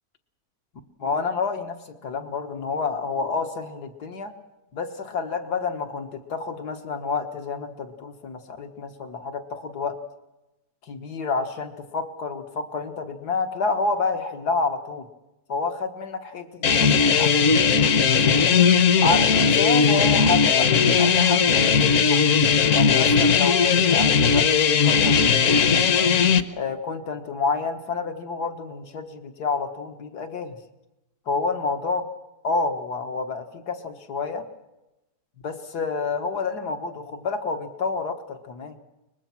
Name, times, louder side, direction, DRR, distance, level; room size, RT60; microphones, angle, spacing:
voice 1, 1.0-4.3 4.7-10.0 10.8-15.1 15.5-17.6 18.2-18.7 19.0-20.7 21.0-22.2 22.7-26.1 26.5-30.6 31.3-32.1 32.4-34.5 35.4-38.8, left 4 dB, 85° left, 6 dB, 2.1 m, -29 dB
sound 1, 16.6-26.4, left 6 dB, 55° left, 1.2 m, -18 dB
23.5 x 21.0 x 6.0 m, 0.97 s
omnidirectional pair, 1.7 m